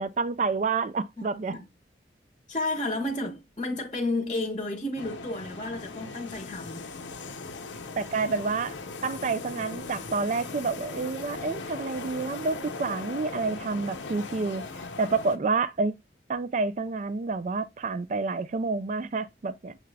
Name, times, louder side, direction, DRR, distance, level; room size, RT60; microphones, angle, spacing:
voice 1, 0.0-1.5 8.0-8.7 9.0-14.6 15.0-16.0 16.3-19.8, right 4 dB, 40° right, 0.4 m, -29 dB
voice 2, 1.2-1.6 2.5-6.9, left 2 dB, 30° left, 0.8 m, -32 dB
sound 1, 5.0-15.4, left 3 dB, 85° left, 0.7 m, -39 dB
6.7 x 2.4 x 3.3 m
head